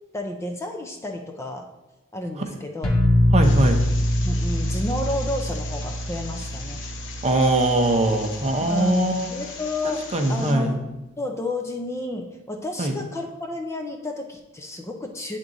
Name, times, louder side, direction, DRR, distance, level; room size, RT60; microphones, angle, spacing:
voice 1, 0.1-1.7 2.1-2.9 4.2-6.8 8.6-10.8 11.2-15.4, left 1 dB, 15° left, 3 dB, 0.5 m, -31 dB
sound 1, 2.8-8.6, left 1 dB, 75° left, 1.3 m, -24 dB
voice 2, 3.3-3.8 7.2-9.3 10.1-10.8 12.8-12.9, right 1 dB, 30° right, 5 dB, 0.6 m, -21 dB
sound 2, 3.4-10.5, left 5 dB, 55° left, 0.9 m, -40 dB
9.3 x 3.6 x 3.9 m, 0.99 s
head